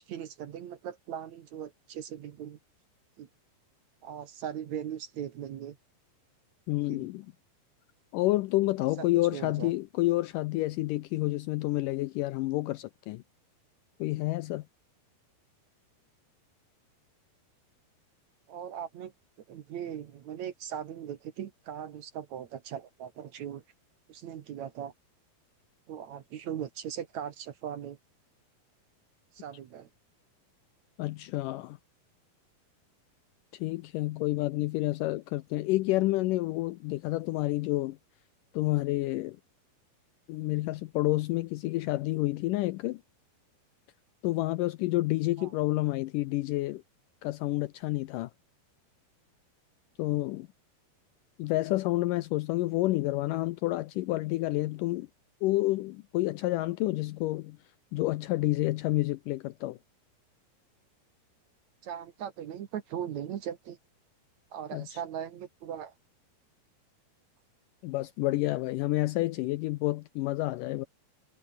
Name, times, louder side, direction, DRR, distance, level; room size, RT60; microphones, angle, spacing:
voice 1, 0.0-2.6 3.2-3.3 4.0-5.8 6.9-7.1 9.0-9.1 9.3-9.7 18.5-19.1 19.5-23.6 24.1-24.9 25.9-28.0 29.3-29.9 45.4-45.5 61.8-63.8 64.5-65.9, right 9 dB, 60° right, 2.2 m, -39 dB
voice 2, 6.7-7.3 8.1-13.2 14.0-14.6 31.0-31.8 33.5-38.0 38.5-39.4 40.3-43.0 44.2-46.8 47.2-48.3 50.0-50.5 51.4-55.1 55.4-57.6 57.9-59.8 64.7-64.9 67.8-70.9, left 18 dB, 90° left, 1.9 m, -29 dB
omnidirectional pair, 4.4 m